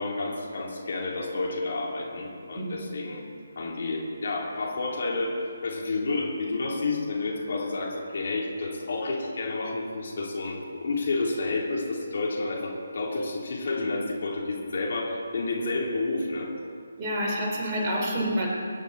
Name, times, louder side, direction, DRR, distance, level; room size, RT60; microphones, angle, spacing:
voice 1, 0.0-3.2 3.5-16.5, left 3 dB, 55° left, -1 dB, 3.1 m, -30 dB
voice 2, 17.0-18.5, equal, 20° right, -5 dB, 4.2 m, -28 dB
23.0 x 10.5 x 4.1 m, 2.2 s
figure-of-eight pair, 150°, 0 cm